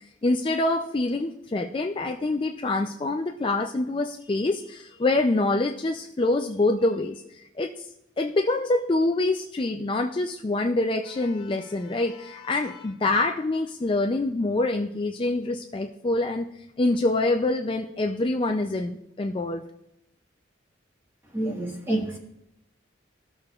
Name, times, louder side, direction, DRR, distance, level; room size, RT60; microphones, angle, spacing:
voice 1, 0.0-7.9 8.2-16.5 16.8-19.7, left 2 dB, 25° left, 4 dB, 0.4 m, -26 dB
voice 2, 21.3-22.2, right 1 dB, 10° right, -1 dB, 1.5 m, -28 dB
16.0 x 6.6 x 2.4 m, 0.80 s
head